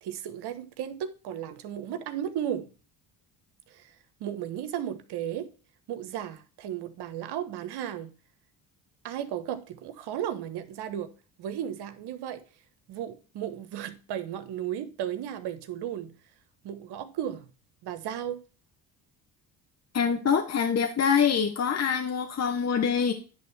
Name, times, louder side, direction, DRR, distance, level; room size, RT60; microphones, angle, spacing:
voice 1, 0.0-2.7 3.7-5.5 5.9-8.1 9.0-11.1 11.4-12.4 12.9-16.1 16.6-17.5 17.8-18.4, right 10 dB, 75° right, 1.2 m, -34 dB
voice 2, 19.9-23.1, left 7 dB, 40° left, 1.2 m, -25 dB
10.5 x 3.6 x 4.6 m
supercardioid pair, 80°, 40 cm